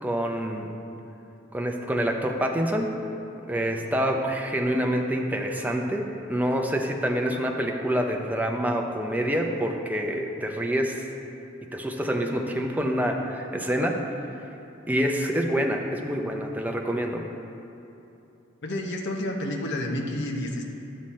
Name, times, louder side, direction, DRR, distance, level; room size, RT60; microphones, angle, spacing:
voice 1, 0.0-0.7 1.5-2.9 3.5-11.0 11.7-14.0 14.9-17.2, equal, 10° right, 2 dB, 0.7 m, -26 dB
voice 2, 18.6-20.6, left 1 dB, 60° left, 1 dB, 0.9 m, -30 dB
11.0 x 7.7 x 4.3 m, 2.9 s
head